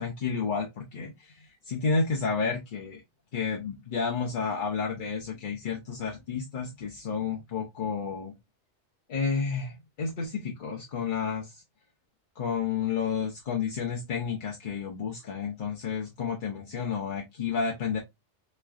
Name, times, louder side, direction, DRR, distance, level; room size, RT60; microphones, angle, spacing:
voice 1, 0.0-3.0 3.3-8.3 9.1-11.6 12.4-18.0, left 5 dB, 55° left, 0.7 m, -31 dB
3.6 x 3.2 x 2.3 m
omnidirectional pair, 1.2 m